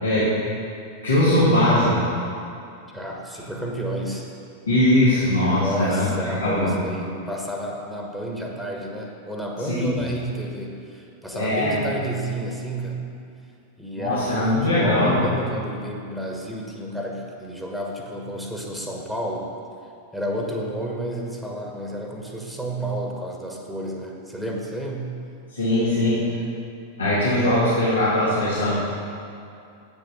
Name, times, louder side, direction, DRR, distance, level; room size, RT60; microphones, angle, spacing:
voice 1, 0.0-0.4 1.0-2.0 4.7-6.8 9.7-9.9 11.3-11.8 14.0-15.2 25.5-26.4 27.0-28.8, left 1 dB, 75° left, -10 dB, 2.2 m, -20 dB
voice 2, 2.9-4.3 5.5-13.0 13.8-19.5 20.1-25.1, right 1 dB, ahead, -1 dB, 1.3 m, -31 dB
8.3 x 7.2 x 5.4 m, 2.5 s
figure-of-eight pair, 90°, 0 cm